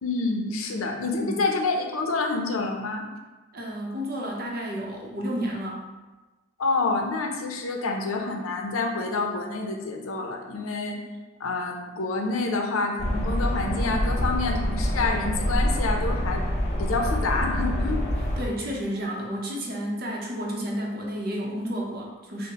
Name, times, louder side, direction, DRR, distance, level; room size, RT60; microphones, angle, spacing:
voice 1, 0.0-3.1 6.6-11.0 11.4-16.4 16.8-18.0, left 3 dB, 85° left, 2 dB, 0.6 m, -27 dB
voice 2, 3.5-5.8 18.4-22.5, equal, 45° right, -1 dB, 0.7 m, -31 dB
sound 1, 13.0-18.4, equal, 35° left, 0.6 m, -26 dB
6.1 x 2.1 x 2.9 m, 1.2 s
head